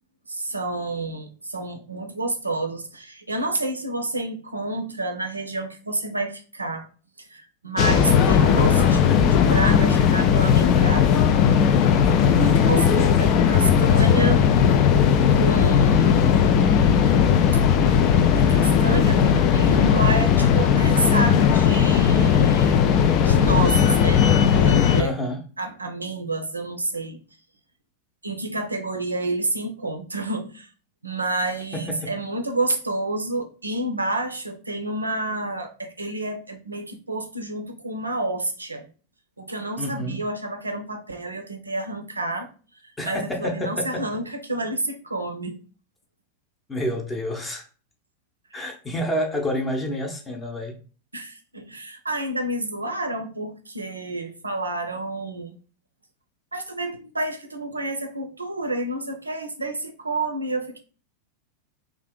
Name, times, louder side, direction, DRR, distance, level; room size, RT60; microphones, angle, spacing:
voice 1, 0.3-6.9 7.2-11.2 12.3-14.4 15.4-16.6 18.3-22.8 23.2-25.1 25.6-27.2 28.2-30.7 31.0-38.9 39.4-42.5 43.0-45.6 48.5-48.6 51.1-55.6 56.5-60.8, right 2 dB, 80° right, 6 dB, 0.5 m, -29 dB
sound 1, 7.8-25.0, left 7 dB, 40° left, 0.3 m, -17 dB
voice 2, 12.3-12.6 25.0-25.4 31.7-32.1 39.8-40.2 43.0-44.0 46.7-47.6 48.5-50.8, equal, 15° left, 2 dB, 0.7 m, -28 dB
2.7 x 2.4 x 3.7 m, 0.38 s
figure-of-eight pair, 90°, 0 cm